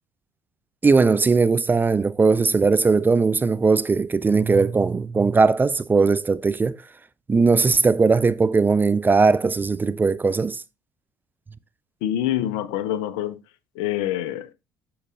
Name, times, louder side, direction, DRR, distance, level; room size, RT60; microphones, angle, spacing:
voice 1, 0.8-6.8 7.3-10.6, right 4 dB, 20° right, 0.4 m, -19 dB
voice 2, 12.0-13.4 13.8-14.5, left 12 dB, 65° left, 0.6 m, -26 dB
8.5 x 6.7 x 2.4 m
hypercardioid pair, 55°, 10 cm